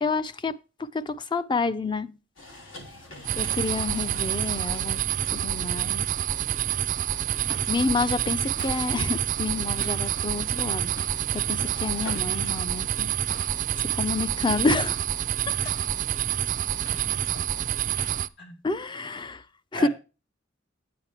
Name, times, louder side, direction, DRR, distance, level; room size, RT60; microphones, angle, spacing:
voice 1, 0.0-2.2 3.4-5.0 5.3-6.1 7.7-10.9 11.3-13.1 13.8-15.0 15.5-15.7 18.6-19.4 19.7-19.9, left 3 dB, 25° left, 0.5 m, -29 dB
sound 1, 2.4-14.1, left 2 dB, 80° left, 2.8 m, -47 dB
voice 2, 3.0-3.4 15.5-15.7 16.9-17.4 18.4-18.6 19.7-19.9, right 2 dB, 60° left, 3.7 m, -41 dB
sound 2, 3.2-18.3, right 11 dB, 40° right, 0.3 m, -28 dB
sound 3, 7.3-18.2, left 1 dB, 45° left, 3.1 m, -46 dB
9.0 x 8.7 x 3.3 m
head